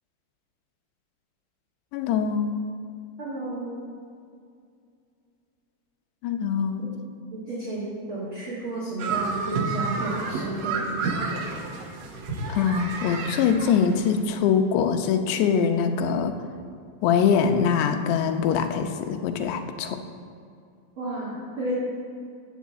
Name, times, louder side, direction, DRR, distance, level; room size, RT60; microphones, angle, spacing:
voice 1, 1.9-2.6 6.2-6.9 12.6-16.3 17.0-20.0, left 7 dB, 85° left, 6 dB, 3.0 m, -23 dB
voice 2, 3.2-3.8 6.8-6.9 7.3-11.3 21.0-21.7, right 2 dB, 35° right, -8 dB, 2.7 m, -32 dB
sound 1, 9.0-14.2, right 4 dB, 65° right, 1.8 m, -30 dB
17.0 x 6.6 x 7.3 m, 2.3 s
omnidirectional pair, 4.8 m